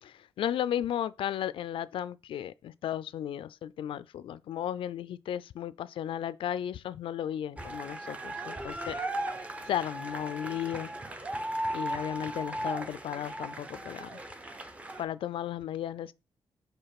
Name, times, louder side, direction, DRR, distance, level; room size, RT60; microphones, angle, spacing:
voice 1, 0.0-9.0 9.7-10.9 11.7-14.2 15.0-16.1, left 10 dB, 75° left, 0.4 m, -34 dB
sound 1, 7.6-15.0, right 1 dB, 15° right, 0.6 m, -37 dB
5.5 x 4.3 x 5.8 m
wide cardioid pair, 165°, 9 cm